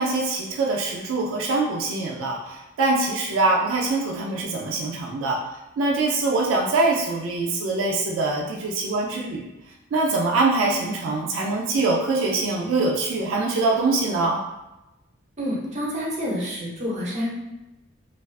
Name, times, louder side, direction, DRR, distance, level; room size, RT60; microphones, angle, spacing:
voice 1, 0.0-5.4 5.8-9.5 9.9-14.4, right 3 dB, 85° right, -1 dB, 0.3 m, -23 dB
voice 2, 15.4-17.4, equal, 35° right, -5 dB, 0.6 m, -28 dB
2.3 x 2.3 x 2.3 m, 0.97 s
head